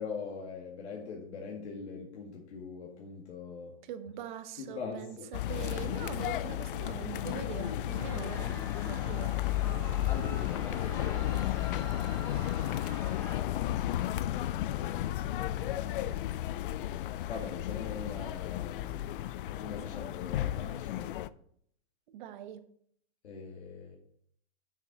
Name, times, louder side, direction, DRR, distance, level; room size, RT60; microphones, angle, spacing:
voice 1, 0.0-3.8 4.6-5.3 7.6-8.3 10.1-13.0 17.3-19.0 19.6-21.1 23.2-24.0, left 5 dB, 85° left, 2.0 m, -43 dB
voice 2, 3.8-9.4 22.1-22.7, right 9 dB, 45° right, 0.9 m, -43 dB
sound 1, 5.3-21.3, left 13 dB, 55° left, 0.4 m, -33 dB
sound 2, 7.9-13.4, left 2 dB, 10° left, 2.0 m, -46 dB
7.1 x 6.7 x 5.1 m
hypercardioid pair, 155°, 33 cm